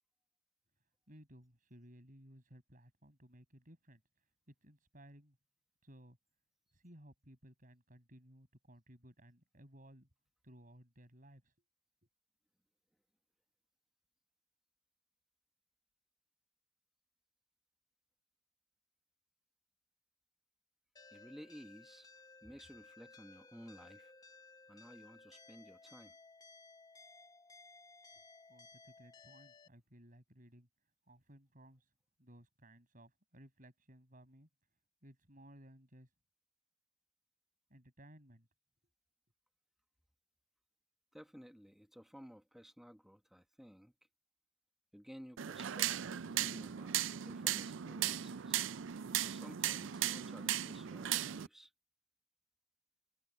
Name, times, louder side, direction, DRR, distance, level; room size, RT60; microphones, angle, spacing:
voice 1, 1.1-5.4 5.8-6.2 6.7-10.1 10.4-11.5 28.5-30.7 31.1-31.9 32.2-34.5 35.0-36.1 37.7-38.5, equal, 45° right, 7.5 m, -59 dB
sound 1, 21.0-29.7, left 3 dB, 20° left, 1.0 m, -59 dB
voice 2, 21.1-22.1 22.4-24.1 24.7-26.2 41.1-43.9 44.9-47.0 47.2-48.6 49.2-51.7, equal, ahead, 1.1 m, -55 dB
sound 2, 45.4-51.5, right 11 dB, 70° right, 0.5 m, -37 dB
head